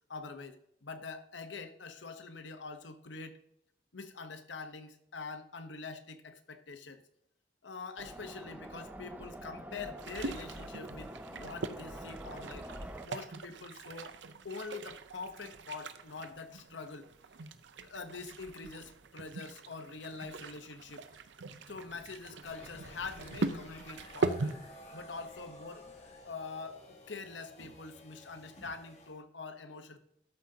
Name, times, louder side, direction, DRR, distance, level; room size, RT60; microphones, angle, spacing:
voice 1, 0.1-3.4 3.9-7.0 7.6-12.7 13.0-14.2 14.4-17.1 17.8-21.0 21.7-24.6 24.9-25.8 26.2-30.0, left 4 dB, 90° left, 9 dB, 1.0 m, -45 dB
sound 1, 8.0-13.1, right 1 dB, 10° right, 0.6 m, -45 dB
sound 2, 10.0-24.5, right 3 dB, 85° right, 0.7 m, -41 dB
sound 3, 22.4-29.1, left 1 dB, 35° left, 1.6 m, -53 dB
13.0 x 7.7 x 2.8 m, 0.71 s
head